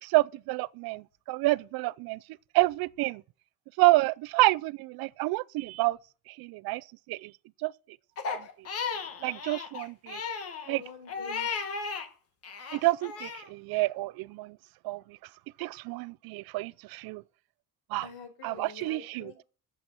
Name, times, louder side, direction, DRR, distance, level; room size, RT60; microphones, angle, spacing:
voice 1, 0.0-2.2 2.5-3.2 3.8-6.0 6.3-7.3 7.6-7.7 8.3-8.7 9.2-10.2 10.7-10.8 12.7-14.6 14.8-15.2 15.6-17.2 17.9-18.1 18.4-19.3, right 20 dB, 85° right, 0.5 m, -28 dB
Crying sobbing, 8.2-12.1 12.4-13.5, left 5 dB, 40° left, 1.5 m, -35 dB
voice 2, 10.7-11.5 18.0-19.4, left 6 dB, 85° left, 5.2 m, -46 dB
11.5 x 7.7 x 7.0 m
cardioid pair, 170°, 35 cm